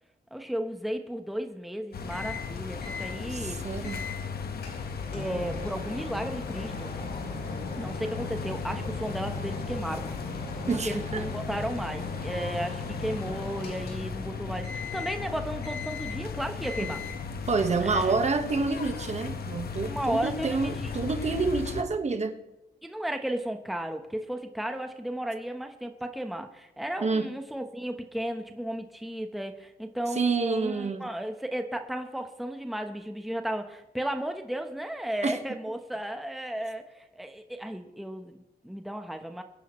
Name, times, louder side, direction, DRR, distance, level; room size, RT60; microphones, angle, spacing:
voice 1, 0.3-3.6 5.1-6.9 7.8-10.1 10.7-17.0 17.8-18.1 19.9-20.9 22.8-39.4, right 1 dB, ahead, 6 dB, 1.1 m, -34 dB
sound 1, 1.9-21.8, left 5 dB, 70° left, 1.4 m, -37 dB
Microwave oven, 2.1-2.5 2.8-3.1 3.8-4.2 4.6-14.3 14.6-15.3 15.6-16.3 16.6-17.3, left 3 dB, 90° left, 4.9 m, -39 dB
voice 2, 3.3-4.0 10.7-11.2 16.8-16.9 17.5-22.3 27.0-27.3 30.1-31.0 35.2-35.4, right 4 dB, 45° right, 7 dB, 1.5 m, -28 dB
23.0 x 10.5 x 3.2 m, 0.96 s
cardioid pair, 105°, 16 cm